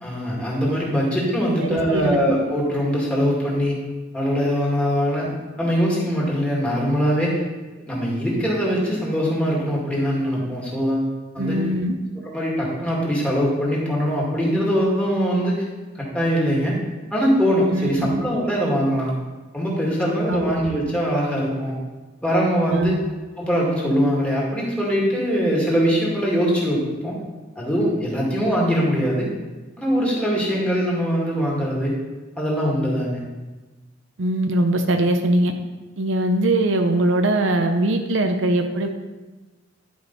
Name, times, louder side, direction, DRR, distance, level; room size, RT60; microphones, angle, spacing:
voice 1, 0.0-3.8 4.1-5.3 5.6-7.4 7.9-11.1 11.3-11.6 12.2-15.6 16.0-16.8 17.1-19.2 19.5-21.8 22.2-23.0 23.4-27.2 27.6-29.3 29.8-32.0 32.4-33.2, equal, 5° left, -5 dB, 2.1 m, -22 dB
voice 2, 1.6-2.2 11.4-11.9 17.7-18.1 20.3-20.5 22.7-22.9 34.2-35.5 36.0-38.9, right 1 dB, 70° right, 5 dB, 0.7 m, -21 dB
11.0 x 5.2 x 4.1 m, 1.2 s
head